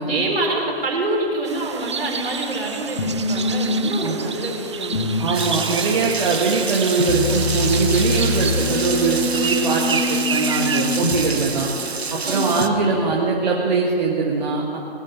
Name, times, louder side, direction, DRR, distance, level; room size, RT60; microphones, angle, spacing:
voice 1, 0.0-5.1 12.2-12.5, right 2 dB, 70° right, 0 dB, 4.3 m, -26 dB
sound 1, 1.5-10.8, right 6 dB, 30° right, 0.5 m, -30 dB
sound 2, 3.0-13.8, left 2 dB, 70° left, 1.5 m, -26 dB
voice 2, 5.2-11.7 12.1-14.8, right 4 dB, 45° right, -3 dB, 1.8 m, -22 dB
Rain, 5.3-12.7, right 5 dB, 90° right, 0.9 m, -28 dB
20.0 x 8.3 x 7.0 m, 2.5 s
figure-of-eight pair, 150°, 31 cm